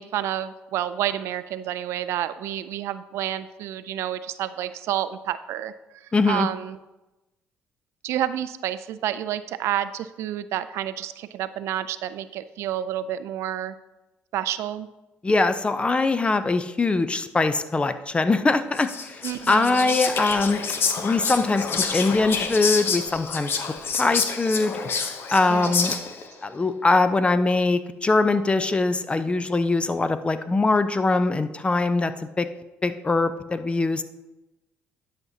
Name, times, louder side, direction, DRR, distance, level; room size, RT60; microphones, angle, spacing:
voice 1, 0.0-6.8 8.0-13.7 14.3-14.9 19.2-20.0 25.5-26.0, right 11 dB, 75° right, 13 dB, 0.4 m, -29 dB
voice 2, 6.1-6.5 15.2-19.2 19.5-20.6 21.0-21.7 21.9-23.5 23.9-24.7 25.3-26.0 26.4-32.1 32.4-32.5 32.8-34.0, left 3 dB, 25° left, 11 dB, 0.6 m, -22 dB
Whispering, 18.7-26.3, left 5 dB, 55° left, 0.8 m, -28 dB
10.5 x 6.0 x 2.8 m, 1.0 s
supercardioid pair, 75°, 5 cm